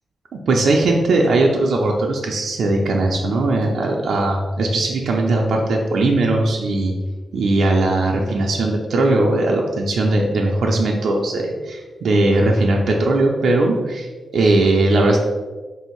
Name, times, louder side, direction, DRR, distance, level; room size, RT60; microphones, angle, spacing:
voice 1, 0.3-6.9 7.3-15.2, right 2 dB, 75° right, 0 dB, 0.5 m, -19 dB
3.3 x 2.7 x 4.4 m, 1.3 s
cardioid pair, 85°, 0 cm